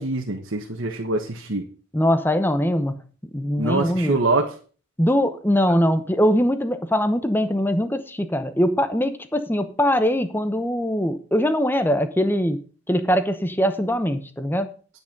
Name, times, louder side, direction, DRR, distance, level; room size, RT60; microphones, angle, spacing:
voice 1, 0.0-1.7 3.6-4.5, right 2 dB, 65° right, 2 dB, 1.4 m, -24 dB
voice 2, 1.9-2.9 3.3-4.2 5.0-12.6 12.9-14.7, equal, 10° left, 10 dB, 0.8 m, -22 dB
9.9 x 8.9 x 5.3 m, 0.39 s
head